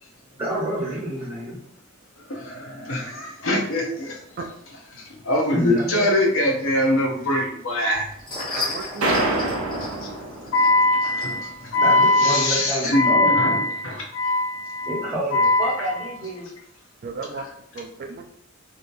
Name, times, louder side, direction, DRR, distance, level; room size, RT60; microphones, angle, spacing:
voice 1, 0.4-1.6 5.5-6.1 11.8-13.3 14.9-16.5, equal, 10° right, -8 dB, 1.1 m, -28 dB
voice 2, 2.2-4.4 4.9-8.1 9.8-10.1 10.4-16.1, left 2 dB, 65° left, 1 dB, 0.8 m, -22 dB
sound 1, 7.9-13.1, left 2 dB, 20° left, 1.3 m, -35 dB
voice 3, 8.6-9.4 17.0-17.5 17.7-18.3, right 4 dB, 45° right, 5 dB, 0.4 m, -34 dB
sound 2, 9.0-11.0, right 2 dB, 85° right, 0.7 m, -26 dB
3.5 x 2.8 x 2.5 m, 0.67 s
head